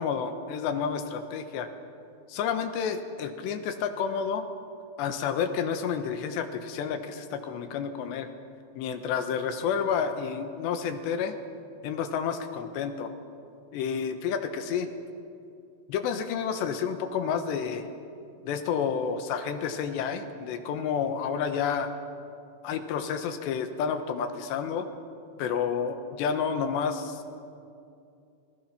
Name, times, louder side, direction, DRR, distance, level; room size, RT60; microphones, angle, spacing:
voice 1, 0.0-1.7 2.3-4.5 5.0-8.3 8.8-11.4 11.8-13.1 13.7-14.9 15.9-17.9 18.4-21.9 22.6-24.9 25.4-27.4, left 7 dB, 85° left, 7 dB, 3.4 m, -30 dB
27.5 x 19.5 x 5.8 m, 2.6 s
omnidirectional pair, 4.9 m